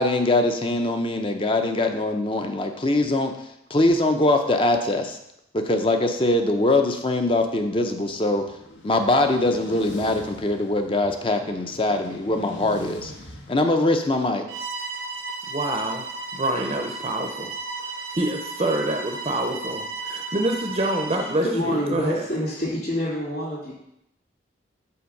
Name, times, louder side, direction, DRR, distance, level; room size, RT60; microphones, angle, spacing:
voice 1, 0.0-3.3 3.7-5.2 5.5-8.4 8.8-13.1 13.5-14.4, left 2 dB, 25° left, 6 dB, 0.6 m, -22 dB
sound 1, 7.5-13.5, left 1 dB, 70° left, 1.1 m, -41 dB
Bowed string instrument, 14.5-21.4, right 3 dB, 80° right, 0.8 m, -34 dB
voice 2, 15.5-16.1 16.3-22.2, right 1 dB, 30° right, 3 dB, 0.6 m, -27 dB
voice 3, 21.4-23.7, equal, 45° left, -10 dB, 2.9 m, -27 dB
5.8 x 4.5 x 6.4 m, 0.81 s
head